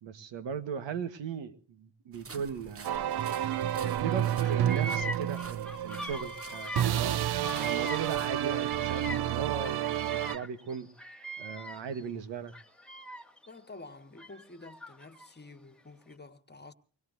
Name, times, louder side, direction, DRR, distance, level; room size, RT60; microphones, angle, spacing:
voice 1, 0.0-3.1 4.0-7.2 7.6-10.9 11.4-12.5, right 7 dB, 80° right, 1.5 m, -38 dB
sound 1, 2.1-8.3, right 4 dB, 30° right, 1.1 m, -50 dB
sound 2, 2.8-10.4, right 11 dB, 60° right, 0.7 m, -30 dB
Bird vocalization bird call bird song, 3.2-4.0 4.2-9.3 9.6-12.0 12.5-13.5 14.2-15.3, right 1 dB, ahead, 1.5 m, -41 dB
voice 2, 13.5-16.7, left 3 dB, 25° left, 1.5 m, -49 dB
25.0 x 21.0 x 2.6 m
cardioid pair, 80°, 43 cm